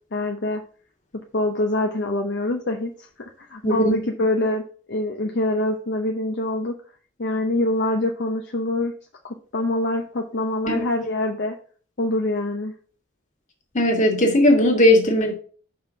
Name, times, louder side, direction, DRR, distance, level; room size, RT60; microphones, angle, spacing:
voice 1, 0.1-0.6 1.3-4.6 4.9-6.7 7.2-8.9 9.2-11.5 12.0-12.7, left 1 dB, 60° left, 0.8 m, -25 dB
voice 2, 3.6-4.0 10.7-10.8 13.7-15.3, left 1 dB, 40° left, 1.9 m, -17 dB
5.6 x 4.7 x 6.1 m
head